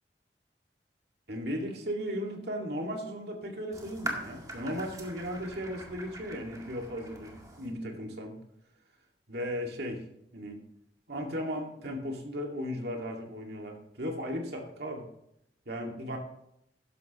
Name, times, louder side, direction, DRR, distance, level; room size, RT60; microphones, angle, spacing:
voice 1, 1.3-7.3 7.6-8.4 9.3-10.0 10.3-10.6 11.1-15.1 15.7-16.2, equal, 65° right, 1 dB, 2.2 m, -36 dB
sound 1, 3.7-7.7, right 1 dB, 20° right, 2.0 m, -42 dB
13.0 x 11.0 x 3.1 m, 0.78 s
head